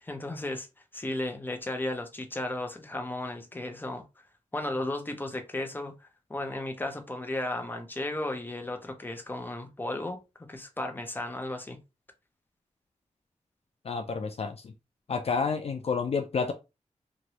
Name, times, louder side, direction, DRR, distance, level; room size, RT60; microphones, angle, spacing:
voice 1, 0.0-0.7 0.9-4.0 4.5-11.8, left 1 dB, 15° left, 0.7 m, -34 dB
voice 2, 13.9-14.7 15.1-16.5, left 5 dB, 50° left, 0.4 m, -29 dB
3.0 x 2.6 x 2.9 m
wide cardioid pair, 100°, 13 cm